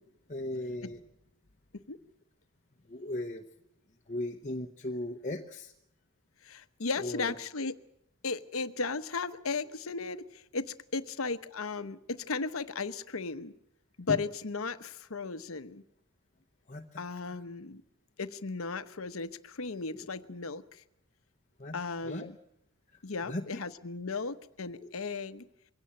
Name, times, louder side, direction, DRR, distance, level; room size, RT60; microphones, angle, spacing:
voice 1, 0.3-1.0 2.9-3.4 4.1-5.7 7.0-7.4 14.1-14.2 16.7-17.4 19.9-20.1 21.6-21.8 22.0-22.3 23.3-23.6 24.8-24.9, left 1 dB, 35° left, 2 dB, 1.0 m, -37 dB
voice 2, 6.4-7.7 8.2-13.5 14.0-15.8 17.0-17.8 18.2-20.6 21.7-22.4 23.0-25.5, left 4 dB, 80° left, 11 dB, 1.0 m, -35 dB
22.5 x 17.0 x 8.7 m, 0.78 s
head